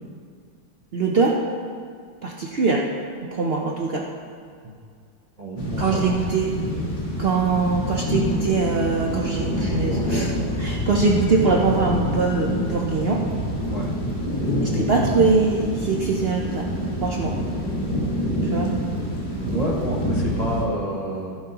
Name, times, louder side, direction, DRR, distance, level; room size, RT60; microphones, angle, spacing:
voice 1, 0.9-1.4 2.2-2.9 3.3-4.0 5.8-6.5 7.2-13.2 14.6-16.7 17.0-17.4 18.5-18.7, right 4 dB, 90° right, -1 dB, 0.5 m, -22 dB
voice 2, 5.4-6.2 13.7-13.9 19.4-21.4, right 1 dB, 30° right, -4 dB, 0.8 m, -29 dB
sound 1, 5.6-20.6, equal, 25° left, 1.7 m, -26 dB
15.5 x 9.4 x 2.9 m, 2.2 s
omnidirectional pair, 2.0 m